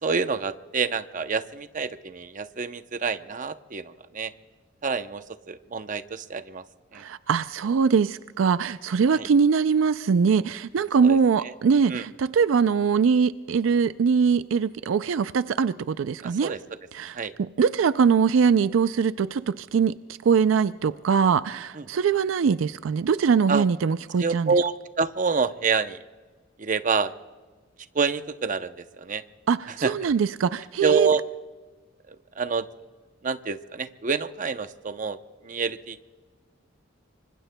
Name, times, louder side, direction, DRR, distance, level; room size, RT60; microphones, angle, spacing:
voice 1, 0.0-4.3 4.8-6.6 6.9-7.0 9.1-9.3 11.0-11.5 11.9-12.0 16.2-16.6 17.1-17.3 21.8-21.9 23.5-23.6 24.2-26.0 26.6-27.1 27.9-29.2 29.8-30.1 30.8-31.2 32.1-32.7 33.2-35.2 35.4-36.0, right 5 dB, 40° right, 10 dB, 0.7 m, -27 dB
voice 2, 6.9-16.5 16.9-19.9 20.2-24.6 29.5-31.1, right 6 dB, 80° right, 14 dB, 0.4 m, -22 dB
26.5 x 25.0 x 2.2 m, 1.3 s
head